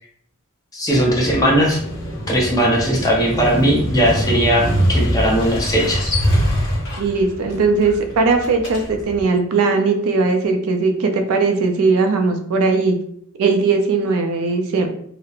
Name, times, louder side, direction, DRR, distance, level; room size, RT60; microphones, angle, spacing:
voice 1, 0.7-1.8 2.3-6.1, equal, 15° left, -3 dB, 0.6 m, -18 dB
Motorcycle, 0.9-9.2, equal, 60° left, 1.1 m, -24 dB
voice 2, 7.0-13.0 13.4-14.9, right 4 dB, 70° right, 5 dB, 0.4 m, -18 dB
2.8 x 2.0 x 2.4 m, 0.65 s
head